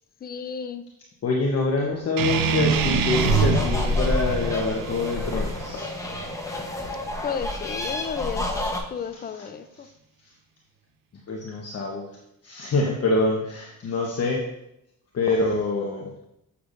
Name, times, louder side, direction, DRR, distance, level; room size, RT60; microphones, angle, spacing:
voice 1, 0.2-0.8 7.2-9.9, left 6 dB, 30° left, 11 dB, 0.5 m, -33 dB
voice 2, 1.2-5.9 11.3-12.0 12.4-14.5 15.1-16.1, left 3 dB, 45° left, -1 dB, 1.1 m, -25 dB
sound 1, 2.2-7.2, right 6 dB, 75° right, 0.7 m, -26 dB
sound 2, 2.3-8.8, left 2 dB, 10° left, 1.0 m, -29 dB
8.0 x 6.9 x 2.6 m, 0.83 s
cardioid pair, 105°, 34 cm